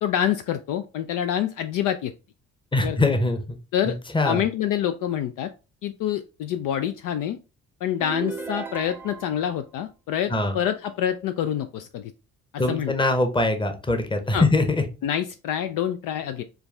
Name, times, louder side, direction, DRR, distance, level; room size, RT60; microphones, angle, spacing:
voice 1, 0.0-2.1 2.8-3.0 3.7-4.0 4.2-5.5 5.8-7.4 7.8-12.1 12.7-12.9 14.3-14.4 15.0-16.4, left 10 dB, 55° left, 9 dB, 0.4 m, -26 dB
voice 2, 2.7-3.6 3.8-4.4 10.3-10.5 12.6-14.8, left 2 dB, 15° left, 7 dB, 0.9 m, -23 dB
sound 1, 8.0-9.5, right 4 dB, 5° right, 0.5 m, -35 dB
4.6 x 2.2 x 3.3 m, 0.31 s
hypercardioid pair, 55°, 38 cm